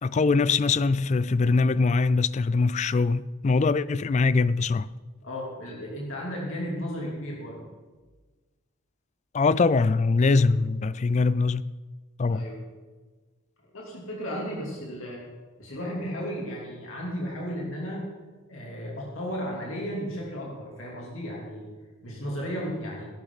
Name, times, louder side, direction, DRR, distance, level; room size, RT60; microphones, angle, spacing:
voice 1, 0.0-4.9 9.3-11.7 12.2-12.4, left 4 dB, 30° left, 0.3 m, -22 dB
voice 2, 5.2-7.6 10.2-10.4 12.3-12.6 13.7-15.2 15.6-18.0 18.5-21.7 22.0-23.1, equal, 70° left, 3.2 m, -34 dB
16.5 x 12.0 x 4.1 m
head